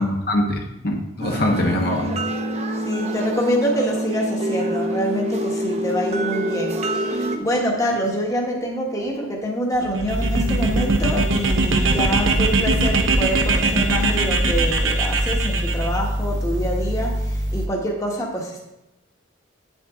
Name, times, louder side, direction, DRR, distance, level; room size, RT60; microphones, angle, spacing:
voice 1, 0.0-2.1, left 1 dB, 50° left, 1 dB, 1.2 m, -23 dB
sound 1, 1.2-7.4, right 1 dB, 30° right, 0.8 m, -26 dB
voice 2, 2.8-18.6, equal, 15° left, -1 dB, 1.3 m, -26 dB
sound 2, 9.8-15.9, right 3 dB, 80° right, 1.1 m, -21 dB
sound 3, 10.1-17.7, equal, 60° right, 0.9 m, -25 dB
9.5 x 8.1 x 3.6 m, 0.92 s
head